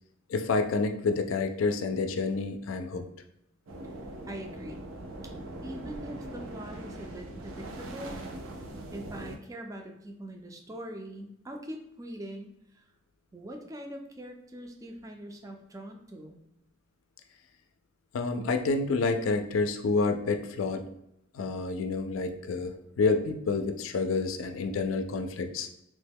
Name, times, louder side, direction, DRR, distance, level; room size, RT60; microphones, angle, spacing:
voice 1, 0.3-3.1 18.1-20.8 21.3-25.7, left 4 dB, 90° left, 7 dB, 0.4 m, -28 dB
sound 1, 3.7-9.4, right 1 dB, 85° right, 0.5 m, -41 dB
voice 2, 4.3-4.8 5.2-5.3 5.6-8.2 8.9-12.8 13.3-16.4, right 1 dB, 15° right, 3 dB, 0.4 m, -42 dB
3.1 x 2.1 x 3.4 m, 0.81 s
head